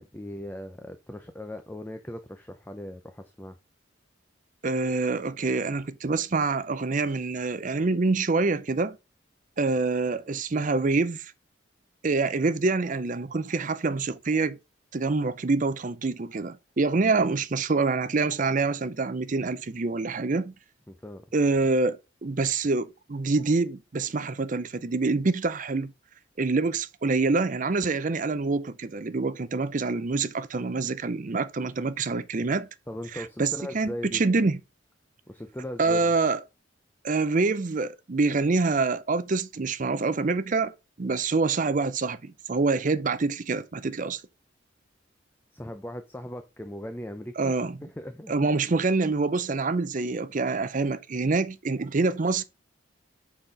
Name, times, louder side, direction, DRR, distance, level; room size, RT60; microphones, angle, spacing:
voice 1, 0.0-3.6 20.9-21.2 32.9-34.2 35.3-36.1 45.5-47.5 48.0-48.5, left 1 dB, 10° left, 0.5 m, -39 dB
voice 2, 4.6-9.0 9.6-11.3 12.0-14.6 14.9-20.5 21.3-25.9 26.4-32.7 33.1-34.6 35.8-36.4 37.0-44.2 47.4-47.8 48.3-52.4, right 3 dB, 40° right, 0.5 m, -26 dB
5.9 x 4.3 x 4.9 m
head